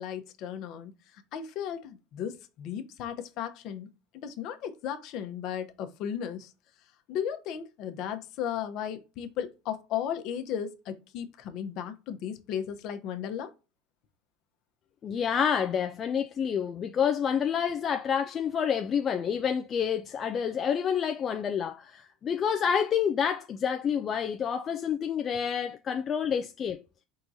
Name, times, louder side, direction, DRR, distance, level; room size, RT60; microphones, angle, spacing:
voice 1, 0.0-3.9 4.1-6.5 7.1-13.5, left 9 dB, 55° left, 0.9 m, -35 dB
voice 2, 15.0-26.8, left 7 dB, 35° left, 0.4 m, -28 dB
4.5 x 3.7 x 2.7 m
supercardioid pair, 105°, 0 cm